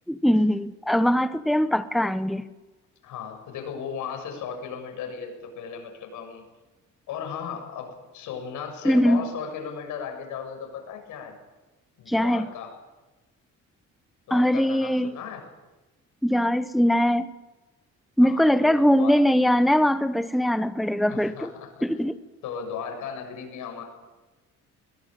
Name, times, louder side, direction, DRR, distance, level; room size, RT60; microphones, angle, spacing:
voice 1, 0.1-2.5 8.8-9.2 12.1-12.5 14.3-15.1 16.2-17.3 18.2-21.5 21.8-22.2, equal, ahead, 1.0 m, -21 dB
voice 2, 3.0-6.5 7.1-11.4 12.0-12.7 14.3-15.5 18.2-19.2 21.1-21.9 22.4-23.8, left 7 dB, 85° left, 7.2 m, -36 dB
22.0 x 20.0 x 9.0 m
cardioid pair, 90°, 30 cm